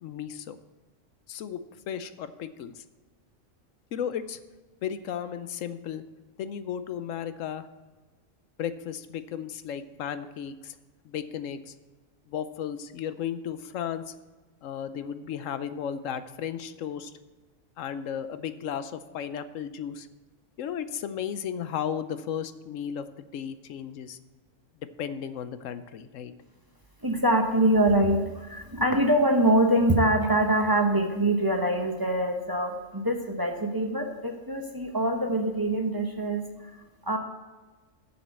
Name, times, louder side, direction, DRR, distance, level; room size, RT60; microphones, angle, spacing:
voice 1, 0.0-0.6 1.3-2.8 3.9-4.4 4.8-6.0 6.4-7.7 8.6-10.7 11.0-11.7 12.3-14.1 14.6-17.1 17.8-20.1 20.6-24.2 25.0-26.3, left 8 dB, 85° left, 12 dB, 1.0 m, -34 dB
voice 2, 27.0-37.2, right 1 dB, 20° right, 3 dB, 0.8 m, -24 dB
7.4 x 7.0 x 8.1 m, 1.3 s
omnidirectional pair, 1.3 m